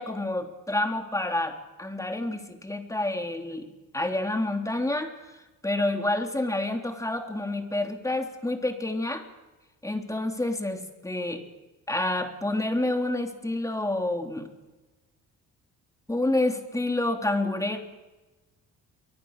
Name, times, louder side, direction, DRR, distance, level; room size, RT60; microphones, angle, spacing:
voice 1, 0.0-1.5 1.8-3.7 3.9-5.1 5.6-9.2 9.8-11.4 11.9-14.5 16.1-17.8, left 2 dB, 10° left, 4 dB, 3.6 m, -28 dB
24.5 x 24.0 x 6.8 m, 1.1 s
cardioid pair, 90°, 30 cm